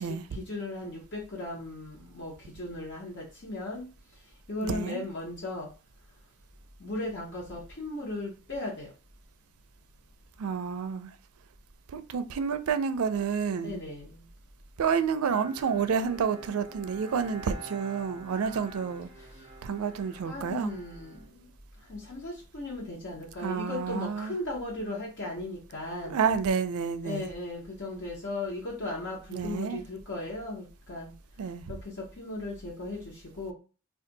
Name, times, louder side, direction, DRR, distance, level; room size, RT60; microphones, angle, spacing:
voice 1, 0.0-3.8 4.5-5.7 6.8-8.9 13.6-14.2 20.3-21.5 21.9-26.2 27.0-31.1 31.7-31.8 32.2-33.5, left 2 dB, 55° left, 0.8 m, -37 dB
voice 2, 4.6-5.0 10.4-11.1 11.9-13.8 14.8-19.1 19.6-20.7 23.4-24.3 26.1-27.3 29.3-29.8 31.4-31.6, right 6 dB, 85° right, 0.4 m, -29 dB
Bowed string instrument, 15.3-22.0, right 2 dB, 25° right, 0.5 m, -47 dB
2.6 x 2.4 x 3.8 m
head